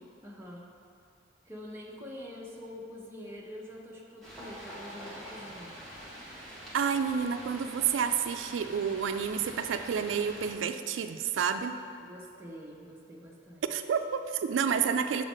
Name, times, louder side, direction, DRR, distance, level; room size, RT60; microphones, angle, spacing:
voice 1, 0.2-0.7 1.4-5.8 12.0-13.6, left 1 dB, 15° right, -3 dB, 0.8 m, -45 dB
sound 1, 4.2-10.5, equal, 5° left, 1.5 m, -45 dB
voice 2, 6.7-11.8 13.7-15.2, right 7 dB, 85° right, 9 dB, 0.3 m, -29 dB
6.9 x 4.1 x 5.1 m, 2.4 s
head